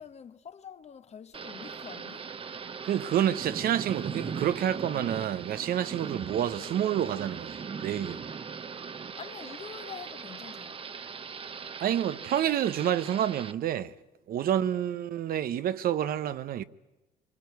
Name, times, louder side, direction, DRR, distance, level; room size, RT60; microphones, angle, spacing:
voice 1, 0.0-2.3 9.1-10.8 14.5-14.7, left 7 dB, 40° left, 1.2 m, -46 dB
Thunder / Rain, 1.3-13.5, right 6 dB, 30° right, 1.0 m, -39 dB
voice 2, 2.8-8.3 11.8-13.9 14.3-16.6, right 10 dB, 60° right, 0.9 m, -28 dB
25.0 x 24.0 x 9.5 m
cardioid pair, 110°, 17 cm